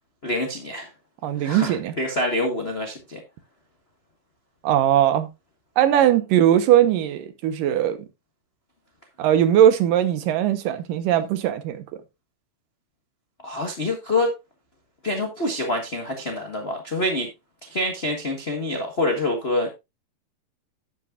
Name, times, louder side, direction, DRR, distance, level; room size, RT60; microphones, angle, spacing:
voice 1, 0.2-0.9 1.4-3.2 13.4-14.3 15.0-17.3 17.7-19.7, left 1 dB, 50° left, 0.7 m, -26 dB
voice 2, 1.2-1.9 4.6-5.3 5.8-8.0 9.2-11.8, right 11 dB, 85° right, 2.7 m, -19 dB
11.5 x 8.6 x 2.5 m
omnidirectional pair, 3.8 m